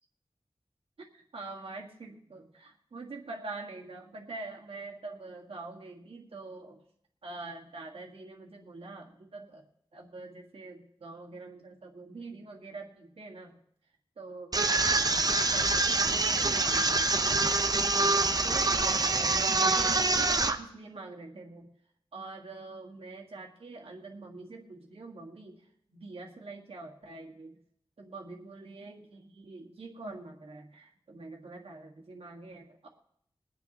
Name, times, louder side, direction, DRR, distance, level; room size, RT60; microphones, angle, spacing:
voice 1, 1.0-6.8 7.2-9.6 9.9-13.6 14.2-21.7 22.1-27.6 28.0-32.8, right 3 dB, 90° right, 0 dB, 1.8 m, -45 dB
sound 1, 14.5-20.6, right 3 dB, 40° right, 0.8 m, -25 dB
22.5 x 9.4 x 3.0 m, 0.70 s
wide cardioid pair, 90°, 10 cm